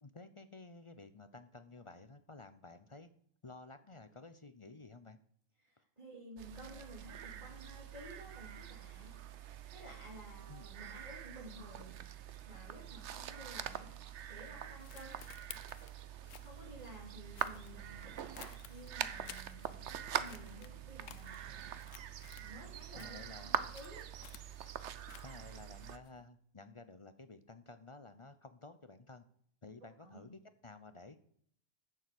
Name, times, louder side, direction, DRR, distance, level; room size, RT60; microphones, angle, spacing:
voice 1, 0.0-3.1 3.4-5.2 10.5-10.7 22.9-23.7 25.2-29.2 29.6-31.2, left 3 dB, 35° left, 10 dB, 0.6 m, -53 dB
voice 2, 5.6-9.2 9.7-12.0 12.5-13.9 14.3-15.2 16.4-21.4 22.4-24.1 29.8-30.3, right 1 dB, 30° right, -6 dB, 3.6 m, -53 dB
sound 1, 6.4-26.0, right 9 dB, 65° right, 1.0 m, -44 dB
sound 2, 14.3-20.0 20.2-22.6 22.9-26.3, left 10 dB, 80° left, 1.1 m, -56 dB
11.0 x 7.1 x 7.8 m, 0.65 s
omnidirectional pair, 1.3 m